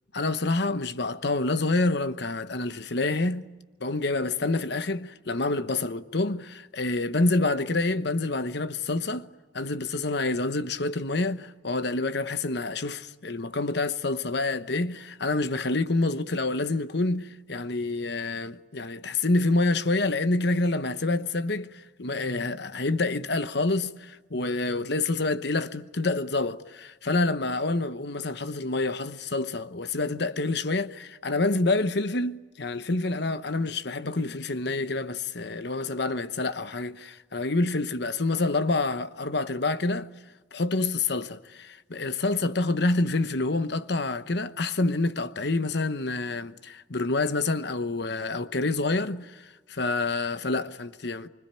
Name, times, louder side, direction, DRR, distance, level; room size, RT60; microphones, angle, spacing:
voice 1, 0.1-3.4 3.8-9.3 9.5-40.1 40.5-51.3, left 2 dB, 60° left, 1.1 m, -27 dB
25.5 x 25.5 x 9.1 m
head